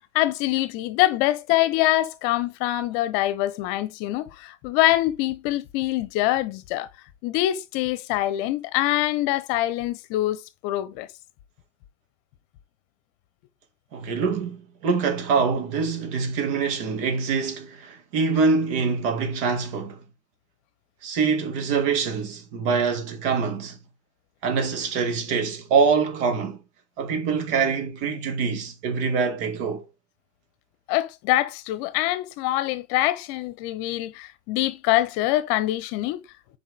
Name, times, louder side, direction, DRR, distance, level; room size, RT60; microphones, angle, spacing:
voice 1, 0.1-6.9 7.2-11.1 30.9-36.2, left 15 dB, 40° left, 1.0 m, -24 dB
voice 2, 13.9-20.0 21.0-23.8 24.4-26.6 27.0-29.8, right 5 dB, 45° right, 2.6 m, -24 dB
7.4 x 5.0 x 3.8 m
hypercardioid pair, 110°, 36 cm